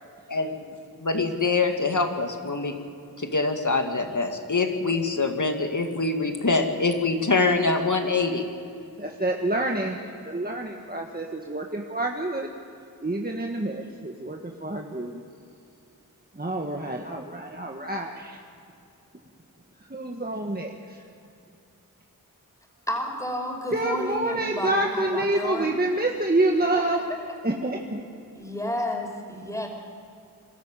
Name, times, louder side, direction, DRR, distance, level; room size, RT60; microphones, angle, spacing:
voice 1, 0.3-2.8 3.2-8.4, left 3 dB, 55° left, 5 dB, 2.3 m, -24 dB
voice 2, 9.0-10.0 10.2-12.5 13.0-15.2 16.3-18.4 19.9-21.0 23.7-27.0 27.4-28.0, right 2 dB, 25° right, 1 dB, 1.6 m, -27 dB
voice 3, 22.9-25.8 26.7-27.2 28.4-29.7, left 1 dB, 10° left, 1 dB, 5.4 m, -31 dB
23.5 x 13.5 x 9.0 m, 2.6 s
wide cardioid pair, 50°, 36 cm